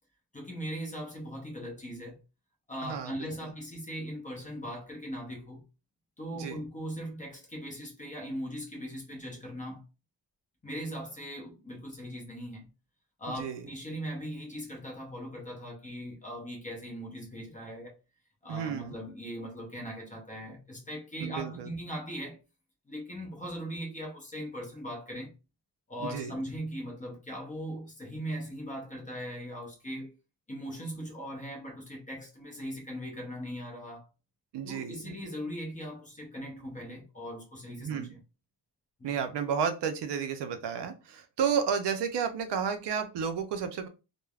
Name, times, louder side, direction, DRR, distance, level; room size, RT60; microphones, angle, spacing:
voice 1, 0.3-2.2 2.7-5.6 6.2-9.8 10.6-12.7 13.2-17.9 18.4-22.4 22.9-25.3 25.9-30.1 30.5-34.1 34.6-38.2 39.0-39.1, equal, 15° left, 0.6 m, -39 dB
voice 2, 2.8-3.5 6.3-6.6 13.4-13.7 18.5-18.9 21.2-21.7 26.0-26.4 34.5-35.2 37.8-38.1 39.0-43.9, right 7 dB, 65° right, 0.5 m, -32 dB
3.2 x 2.1 x 2.3 m
wide cardioid pair, 180°, 44 cm